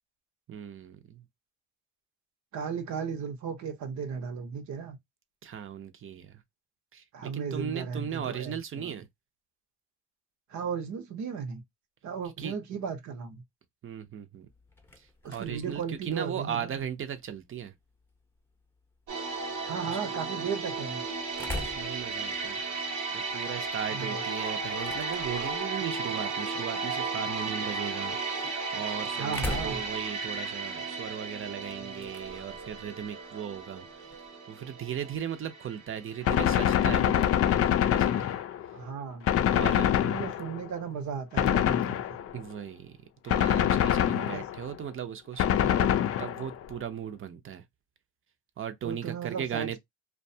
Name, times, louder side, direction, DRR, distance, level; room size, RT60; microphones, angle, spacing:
voice 1, 0.5-1.2 5.4-6.4 6.9-9.1 12.4-12.5 13.8-14.5 15.0-17.7 19.8-20.0 21.5-22.6 23.1-34.2 34.5-37.4 37.9-38.4 39.5-39.9 42.3-42.9 43.2-45.9 46.2-47.6 48.6-49.8, right 8 dB, 45° right, 0.6 m, -37 dB
voice 2, 2.5-5.0 7.1-9.0 10.5-11.6 12.0-13.4 15.2-16.7 19.6-21.0 23.9-24.2 29.1-29.8 38.7-39.3 40.0-42.2 44.2-44.4 48.8-49.8, right 6 dB, 70° right, 0.9 m, -35 dB
sound 1, 14.5-34.3, left 2 dB, 5° left, 0.7 m, -45 dB
sound 2, 19.1-37.9 38.2-38.4, right 4 dB, 90° right, 1.1 m, -35 dB
Gunshot gunfire, 36.3-38.8 39.3-40.7 41.4-42.4 43.3-44.7 45.4-46.6, left 10 dB, 50° left, 0.4 m, -25 dB
2.5 x 2.3 x 2.6 m
cardioid pair, 90°, 30 cm